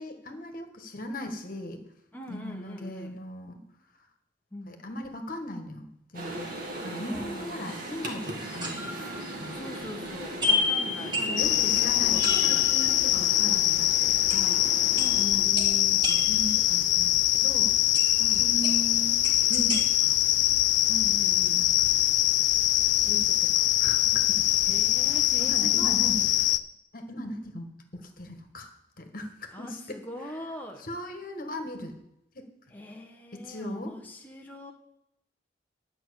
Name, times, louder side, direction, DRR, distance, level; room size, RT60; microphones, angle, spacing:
voice 1, 0.0-1.8 2.3-3.6 4.7-5.9 6.1-6.5 6.8-8.9 9.4-9.9 11.2-17.7 18.3-19.2 19.5-20.2 21.5-22.0 23.0-24.7 25.1-26.3 26.9-30.0 30.8-32.0 32.3-32.5 33.3-34.0, left 1 dB, 50° left, 5 dB, 1.6 m, -38 dB
voice 2, 2.1-3.2 4.5-4.8 7.1-7.8 9.5-12.7 14.9-15.6 18.2-18.5 20.9-21.6 24.7-26.0 29.5-30.9 32.7-34.7, left 1 dB, 10° left, 1 dB, 1.1 m, -42 dB
sound 1, 6.1-15.2, right 1 dB, 50° right, 2.1 m, -38 dB
sound 2, 8.3-9.9 10.4-13.4 13.7-13.8 14.3-14.7 15.0-17.0 17.9-19.8, left 3 dB, 25° right, 1.6 m, -32 dB
sound 3, 11.4-26.6, left 14 dB, 80° left, 0.5 m, -23 dB
11.0 x 5.9 x 8.2 m, 0.80 s
head